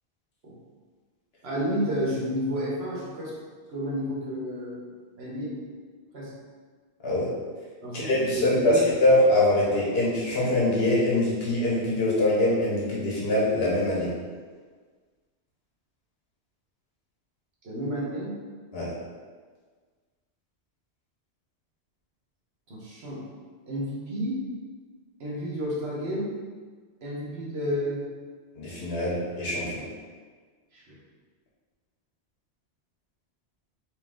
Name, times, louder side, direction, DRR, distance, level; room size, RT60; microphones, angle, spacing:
voice 1, 1.4-3.4 3.7-4.9 5.2-5.6 6.1-6.3 7.8-8.9 17.6-18.4 22.7-23.2 23.7-24.5 25.2-26.3 27.0-28.1 30.7-31.0, equal, 65° right, -6 dB, 1.3 m, -31 dB
voice 2, 7.9-14.1 18.7-18.9 28.6-29.8, left 1 dB, 65° left, -6 dB, 1.3 m, -23 dB
4.4 x 2.7 x 3.7 m, 1.5 s
omnidirectional pair, 1.1 m